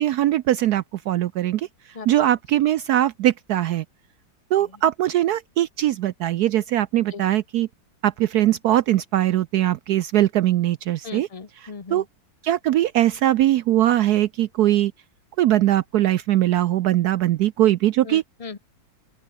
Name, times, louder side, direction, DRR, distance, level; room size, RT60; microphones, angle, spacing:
voice 1, 0.0-1.7 2.1-3.8 4.5-7.7 8.0-11.3 11.9-12.0 12.4-14.9 15.4-18.2, right 13 dB, 75° right, 0.9 m, -21 dB
voice 2, 11.0-12.0 18.0-18.6, left 5 dB, 35° left, 0.6 m, -37 dB
open air
omnidirectional pair, 2.1 m